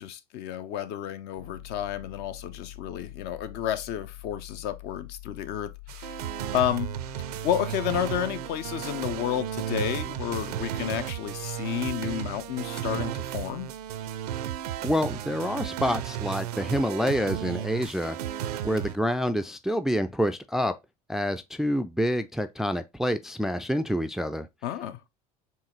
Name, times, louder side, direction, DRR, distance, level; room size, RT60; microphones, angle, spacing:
voice 1, 0.0-6.2 6.5-7.0 7.4-13.7 24.6-25.0, left 10 dB, 55° left, 0.6 m, -31 dB
Piano, 1.4-18.0, left 14 dB, 75° left, 1.5 m, -48 dB
sound 1, 5.9-19.0, right 11 dB, 75° right, 0.5 m, -34 dB
voice 2, 14.8-18.2 18.6-20.7 21.1-24.5, equal, ahead, 0.3 m, -27 dB
4.6 x 2.9 x 3.0 m
hypercardioid pair, 75°, 20 cm